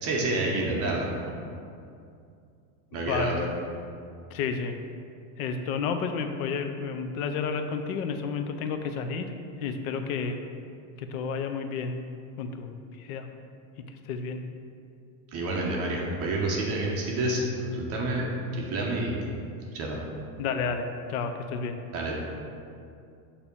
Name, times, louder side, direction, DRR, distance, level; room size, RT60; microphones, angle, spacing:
voice 1, 0.0-1.1 2.9-3.5 15.3-18.3 18.5-19.3 19.7-20.0 21.9-22.1, right 2 dB, 35° right, -2 dB, 0.8 m, -28 dB
voice 2, 2.9-3.3 4.3-4.7 5.4-9.3 9.6-10.4 11.0-12.0 12.4-13.3 13.9-14.4 20.4-21.8, left 5 dB, 75° left, 6 dB, 0.7 m, -31 dB
6.8 x 2.9 x 5.3 m, 2.4 s
supercardioid pair, 170°, 43 cm